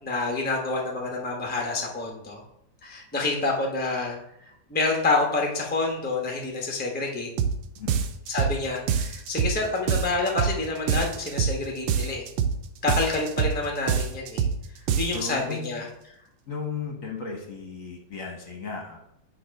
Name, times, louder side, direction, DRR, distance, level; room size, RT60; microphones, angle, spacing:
voice 1, 0.0-2.4 2.8-4.2 4.7-7.3 8.3-12.3 12.8-14.5 15.0-15.9, left 3 dB, 5° left, 0 dB, 0.8 m, -28 dB
sound 1, 7.4-7.6 7.9-8.6 8.9-9.6 9.9-10.6 10.9-11.6 11.9-12.6 12.9-13.6 13.9-14.6 14.9-15.3, right 7 dB, 85° right, 1.3 m, -25 dB
voice 2, 15.1-15.7 16.5-19.0, left 5 dB, 50° left, 1 dB, 1.3 m, -35 dB
8.6 x 3.3 x 5.2 m, 0.77 s
omnidirectional pair, 2.0 m